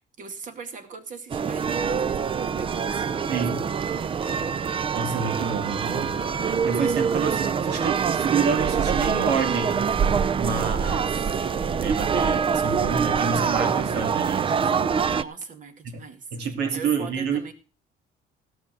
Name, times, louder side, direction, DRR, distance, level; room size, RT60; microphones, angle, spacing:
voice 1, 0.0-3.1 15.0-16.3 16.7-17.5, right 5 dB, 50° right, 8 dB, 2.1 m, -41 dB
sound 1, 1.3-15.2, right 6 dB, 30° right, 0.6 m, -25 dB
voice 2, 3.3-3.7 4.7-9.8 10.4-11.4 11.8-14.9 16.3-17.5, right 6 dB, 80° right, 7 dB, 2.6 m, -29 dB
16.5 x 6.0 x 6.5 m, 0.36 s
cardioid pair, 110°, 17 cm